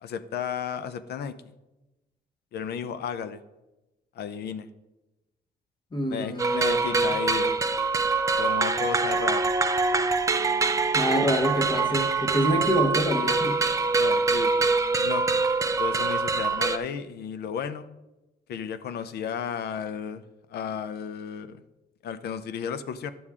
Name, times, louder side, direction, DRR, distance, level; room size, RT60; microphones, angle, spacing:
voice 1, 0.0-1.4 2.5-3.4 4.1-4.7 6.1-7.6 8.4-9.5 14.0-15.3 15.8-17.9 18.5-20.2 20.5-21.6 22.0-23.1, left 7 dB, 75° left, 12 dB, 0.6 m, -33 dB
voice 2, 5.9-7.1 10.9-13.6, equal, 25° left, 5 dB, 1.2 m, -26 dB
sound 1, 6.4-16.8, right 4 dB, 20° right, 0.4 m, -24 dB
11.5 x 7.0 x 3.6 m, 1.0 s
cardioid pair, 160°, 17 cm